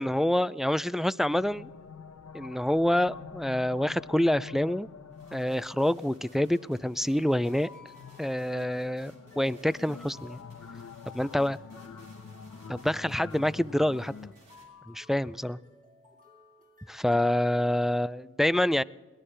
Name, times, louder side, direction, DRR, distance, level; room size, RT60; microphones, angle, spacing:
voice 1, 0.0-1.7 2.3-4.9 5.3-7.7 8.2-10.4 11.1-11.6 12.7-14.1 14.9-15.6 16.9-18.8, left 1 dB, ahead, 16 dB, 0.4 m, -27 dB
sound 1, 1.3-14.3, left 5 dB, 55° left, 1.0 m, -47 dB
sound 2, 5.1-14.6, right 1 dB, 90° right, 4.1 m, -61 dB
sound 3, 6.2-17.7, left 3 dB, 25° right, 2.9 m, -58 dB
22.0 x 18.0 x 3.3 m, 1.4 s
cardioid pair, 45°, 32 cm